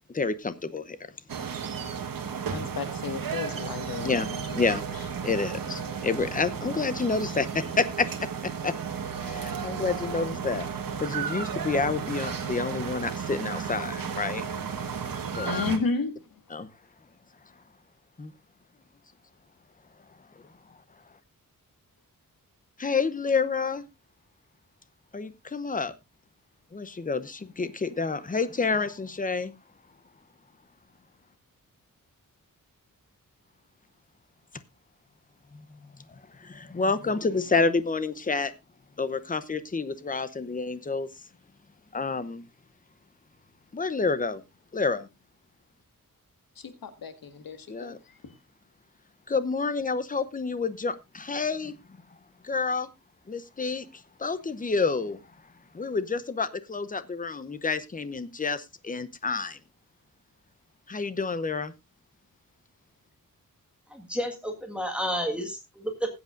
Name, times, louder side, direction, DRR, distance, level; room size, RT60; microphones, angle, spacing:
voice 1, 0.1-1.0 4.0-4.3 4.6-4.8 5.2-8.3 8.6-8.7 9.2-10.7 11.0-14.4 15.3-15.5 16.5-16.7 18.2-18.3 22.8-23.8 25.1-25.9 26.7-29.5 35.5-35.6 36.4-38.5 39.0-41.1 41.9-42.4 43.7-44.4 44.7-45.1 47.7-48.0 49.3-51.7 52.4-52.9 53.3-55.2 55.7-59.6 60.9-61.7, left 4 dB, 25° left, 0.8 m, -29 dB
sound 1, 1.3-15.8, right 6 dB, 75° right, 1.6 m, -33 dB
voice 2, 2.5-4.6 15.4-16.4 46.6-48.1, left 4 dB, 80° left, 1.8 m, -33 dB
voice 3, 63.9-66.1, equal, 5° right, 1.7 m, -31 dB
20.0 x 8.0 x 2.5 m
wide cardioid pair, 155°, 34 cm